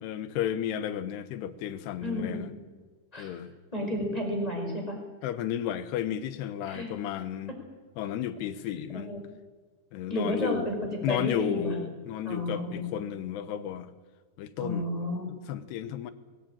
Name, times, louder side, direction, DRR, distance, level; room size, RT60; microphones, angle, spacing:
voice 1, 0.0-2.5 3.2-3.5 5.2-7.6 8.0-9.1 9.9-10.7 11.0-13.9 14.4-14.9 15.5-16.1, left 10 dB, 75° left, 12 dB, 3.0 m, -33 dB
voice 2, 2.0-2.5 3.1-3.3 3.7-5.0 6.6-6.9 8.7-9.2 10.1-11.8 12.2-12.9 14.6-15.3, left 1 dB, 10° left, 0 dB, 5.0 m, -32 dB
21.0 x 17.0 x 8.8 m, 1.4 s
omnidirectional pair, 5.0 m